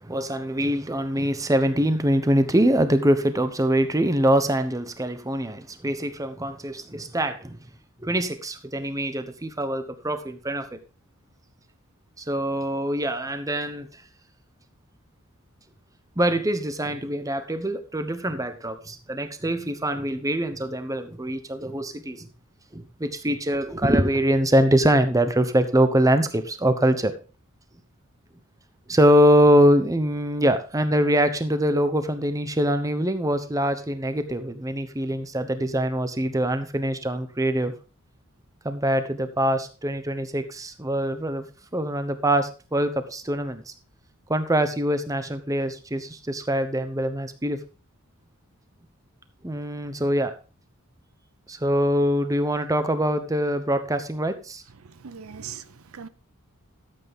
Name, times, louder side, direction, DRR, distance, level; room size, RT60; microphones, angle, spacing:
voice 1, 0.0-7.6 8.0-10.8 12.2-13.9 16.2-22.3 22.7-27.1 28.9-37.7 38.6-41.5 41.7-43.7 44.3-47.6 49.4-50.3 51.5-54.6, equal, 15° right, 0.9 m, -23 dB
voice 2, 54.8-56.1, right 7 dB, 70° right, 0.7 m, -40 dB
13.0 x 8.2 x 3.7 m
head